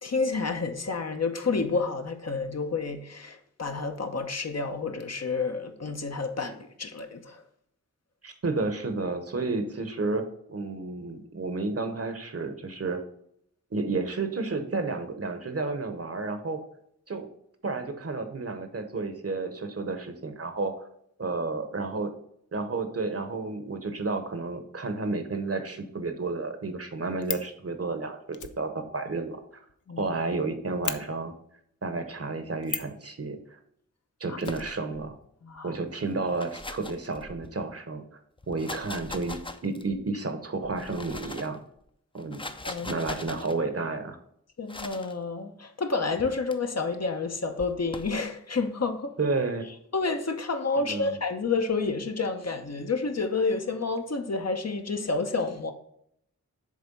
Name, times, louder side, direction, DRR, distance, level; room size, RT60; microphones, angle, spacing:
voice 1, 0.0-7.4 29.9-30.1 34.3-34.4 35.4-35.8 42.6-43.0 44.6-49.1 49.9-55.7, left 4 dB, 55° left, 0.9 m, -29 dB
voice 2, 8.2-13.0 13.7-16.6 17.1-17.3 17.6-20.9 21.2-22.1 22.5-29.6 30.0-31.3 31.8-33.4 34.2-35.2 35.6-38.2 38.5-41.6 42.1-42.4 42.8-44.2 49.2-49.7 50.8-51.1, right 3 dB, 50° right, 1.0 m, -31 dB
Fire, 26.8-27.5 28.3-30.1 30.4-30.5 30.8-31.0 32.6-33.0 34.4-35.3 35.5-35.6 35.9-36.0, left 7 dB, 75° left, 0.6 m, -36 dB
sound 1, 34.4-35.1 36.1-37.7 38.4-40.0 40.6-41.6 42.1-43.6 44.7-45.1 46.2-46.5 47.6-48.2, left 2 dB, 15° left, 0.5 m, -40 dB
7.6 x 3.4 x 5.3 m
wide cardioid pair, 55°, 31 cm